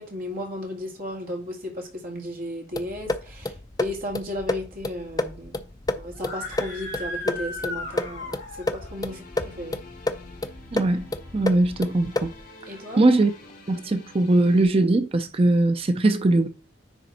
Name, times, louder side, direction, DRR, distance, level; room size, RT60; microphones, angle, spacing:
voice 1, 0.0-5.6 5.9-9.8 12.7-13.0, left 1 dB, 45° right, 2.2 m, -34 dB
sound 1, 2.7-12.5, left 2 dB, 20° left, 0.5 m, -31 dB
Screaming, 6.1-8.9, left 2 dB, 65° left, 2.3 m, -36 dB
sound 2, 8.8-14.6, left 2 dB, 45° left, 3.9 m, -48 dB
voice 2, 10.7-11.0 11.3-12.3 13.0-13.3 13.7-16.5, right 2 dB, 30° right, 0.5 m, -20 dB
10.0 x 3.6 x 4.2 m
head